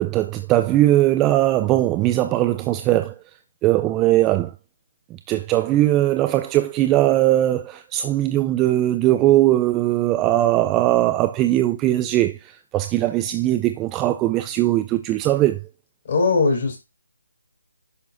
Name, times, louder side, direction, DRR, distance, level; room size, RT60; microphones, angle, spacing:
voice 1, 0.0-3.2 3.6-4.5 5.1-15.6, right 14 dB, 15° right, 0.4 m, -20 dB
voice 2, 16.0-16.8, left 4 dB, 40° left, 4.7 m, -19 dB
10.5 x 7.2 x 2.6 m
figure-of-eight pair, 155°, 0 cm